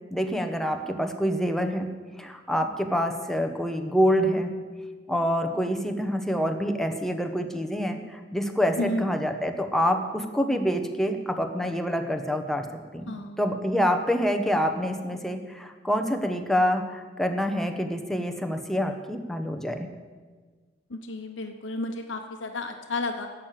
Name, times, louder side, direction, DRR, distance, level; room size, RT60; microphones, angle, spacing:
voice 1, 0.1-1.9 2.2-4.5 5.1-12.6 12.9-19.9, equal, ahead, 5 dB, 1.0 m, -26 dB
voice 2, 8.8-9.2 13.1-13.4 20.9-23.3, left 2 dB, 75° left, 4 dB, 0.9 m, -32 dB
11.5 x 7.6 x 9.1 m, 1.4 s
head